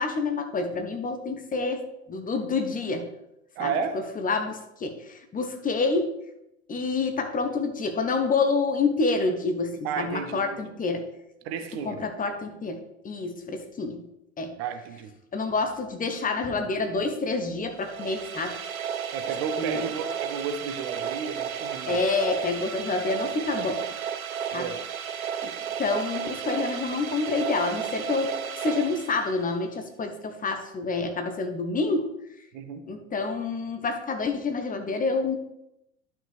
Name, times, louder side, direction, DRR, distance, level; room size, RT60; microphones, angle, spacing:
voice 1, 0.0-3.1 3.6-3.7 4.2-6.2 6.7-11.1 11.8-14.0 14.4-14.6 15.3-18.6 19.6-19.9 21.9-23.8 24.5-24.7 25.4-25.5 25.8-32.1 32.9-35.4, left 3 dB, 20° left, 6 dB, 1.1 m, -28 dB
voice 2, 3.5-4.0 9.8-10.6 11.4-12.0 14.6-15.1 19.1-22.0 24.5-24.8 32.5-32.9, right 6 dB, 50° right, 9 dB, 1.0 m, -32 dB
sound 1, 17.7-29.7, right 8 dB, 85° right, 0.6 m, -33 dB
11.5 x 5.8 x 3.4 m, 0.84 s
figure-of-eight pair, 80°, 40 cm